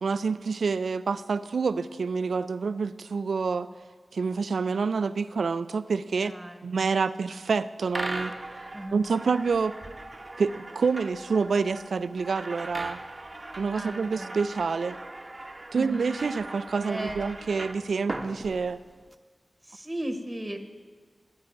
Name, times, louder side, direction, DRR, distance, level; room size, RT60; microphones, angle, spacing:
voice 1, 0.0-3.7 4.1-6.3 6.6-8.3 8.9-9.7 10.4-13.0 13.6-15.0 15.7-18.8, right 5 dB, 80° right, 14 dB, 0.3 m, -27 dB
voice 2, 6.1-6.8 7.0-7.1 8.7-9.0 13.7-14.4 15.7-16.1 16.8-17.3 19.6-20.6, right 1 dB, 20° right, 4 dB, 0.9 m, -36 dB
sound 1, 7.9-19.1, right 2 dB, 40° right, 0.7 m, -39 dB
19.0 x 9.7 x 2.6 m, 1.5 s
cardioid pair, 50°, 0 cm